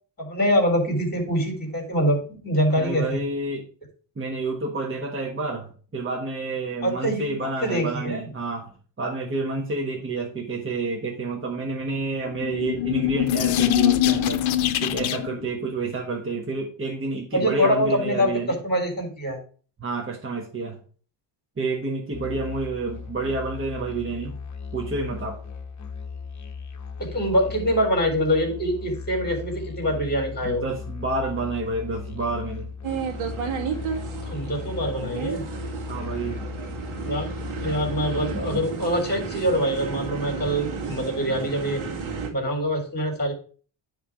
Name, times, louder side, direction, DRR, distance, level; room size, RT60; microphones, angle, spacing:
voice 1, 0.2-3.2 6.8-8.3 17.3-19.4 27.0-30.6 34.3-35.4 37.0-37.3 37.6-41.8 42.3-43.3, equal, 20° left, 1 dB, 3.7 m, -24 dB
voice 2, 2.7-3.6 4.2-8.7 9.0-14.4 14.8-18.6 19.8-20.8 21.6-24.4 24.7-25.4 30.4-32.7 35.9-36.5, right 3 dB, 25° right, 0 dB, 1.5 m, -29 dB
sound 1, 12.2-15.4, left 12 dB, 70° left, 0.8 m, -23 dB
Musical instrument, 22.1-38.6, left 5 dB, 35° left, 1.1 m, -37 dB
sound 2, 32.8-42.3, right 5 dB, 80° right, 2.0 m, -32 dB
10.0 x 3.7 x 4.6 m, 0.40 s
cardioid pair, 100°, 48 cm